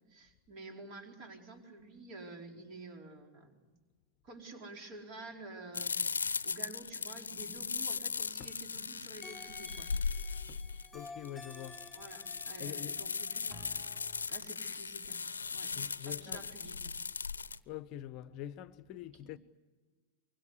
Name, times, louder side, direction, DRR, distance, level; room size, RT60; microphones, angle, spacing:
voice 1, 0.0-3.7 4.2-6.0 6.4-9.9 11.9-13.7 14.3-15.2 15.5-15.8 16.0-16.9 19.1-19.3, right 2 dB, 40° right, 4.6 m, -50 dB
sound 1, 5.7-17.6, left 5 dB, 75° left, 0.7 m, -38 dB
sound 2, 9.2-14.3, left 3 dB, ahead, 1.6 m, -53 dB
voice 2, 10.9-11.8 12.6-13.0 15.8-16.5 17.7-19.4, left 11 dB, 40° left, 0.8 m, -45 dB
24.5 x 24.0 x 8.3 m
figure-of-eight pair, 90°, 0 cm